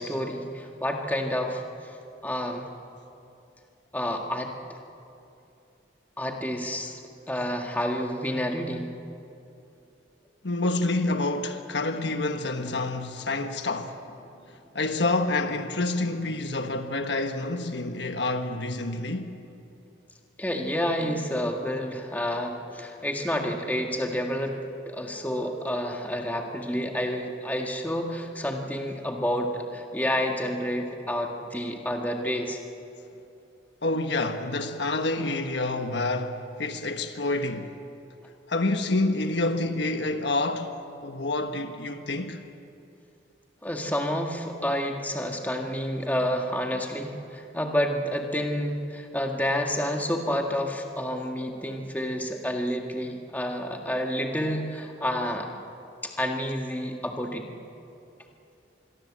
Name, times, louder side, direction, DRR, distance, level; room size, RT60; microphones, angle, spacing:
voice 1, 0.0-2.0 2.2-2.7 3.9-4.5 6.2-7.0 7.3-8.9 20.4-24.5 24.9-32.6 43.6-55.5 56.0-57.5, equal, 10° left, 1.8 m, -29 dB
voice 2, 10.4-14.0 14.7-19.3 33.8-37.7 38.5-42.4, left 2 dB, 65° left, 1.4 m, -28 dB
26.0 x 22.5 x 7.6 m
head